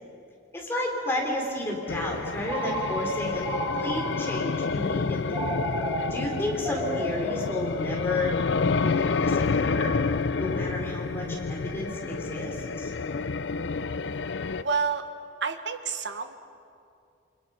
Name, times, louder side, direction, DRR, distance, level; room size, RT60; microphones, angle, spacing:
voice 1, 0.5-5.5 6.1-8.4 8.8-9.9 10.4-12.9, left 1 dB, 10° left, -2 dB, 3.9 m, -32 dB
sound 1, 1.9-14.6, left 4 dB, 70° left, 0.5 m, -29 dB
Telephone, 2.4-4.5 5.3-8.3, right 1 dB, 20° right, 2.7 m, -33 dB
voice 2, 14.6-15.0 15.4-16.4, right 5 dB, 70° right, 8 dB, 1.4 m, -29 dB
29.0 x 25.5 x 5.7 m, 2.5 s
head